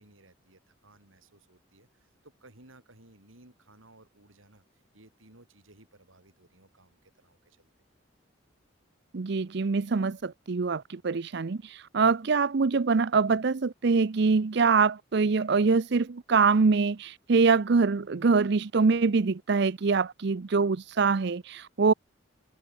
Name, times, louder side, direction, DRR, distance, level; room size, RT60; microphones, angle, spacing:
voice 1, 0.0-7.7, right 2 dB, 90° right, 6.2 m, -58 dB
voice 2, 9.1-21.9, right 4 dB, 55° right, 0.5 m, -24 dB
head